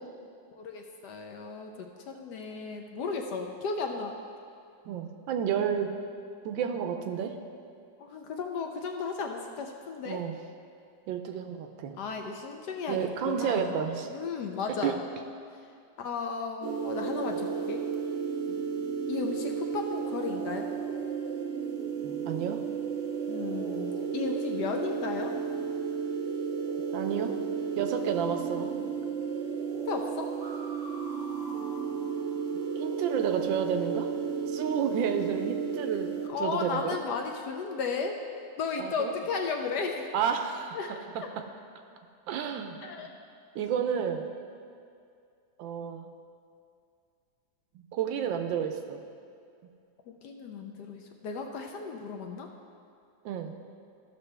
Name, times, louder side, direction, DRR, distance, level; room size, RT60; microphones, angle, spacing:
voice 1, 0.5-4.2 8.0-10.2 12.0-13.8 14.1-15.0 16.0-17.8 19.1-20.7 23.3-25.3 29.7-30.3 36.3-40.1 40.7-40.9 42.8-43.1 50.1-52.5, left 5 dB, 70° left, 3 dB, 1.1 m, -34 dB
voice 2, 4.9-6.0 6.4-7.4 10.1-10.4 11.1-11.9 12.9-14.1 14.8-15.0 18.5-18.6 22.0-22.6 26.9-27.4 27.7-28.8 32.5-34.1 34.5-37.0 38.8-39.1 40.1-40.8 41.1-41.4 42.3-42.8 43.5-44.3 45.6-46.1 47.7-49.0 53.2-53.6, right 8 dB, 80° right, 6 dB, 1.4 m, -31 dB
sound 1, 16.6-36.3, right 6 dB, 55° right, 0.9 m, -33 dB
13.5 x 5.9 x 3.3 m, 2.4 s
omnidirectional pair, 2.1 m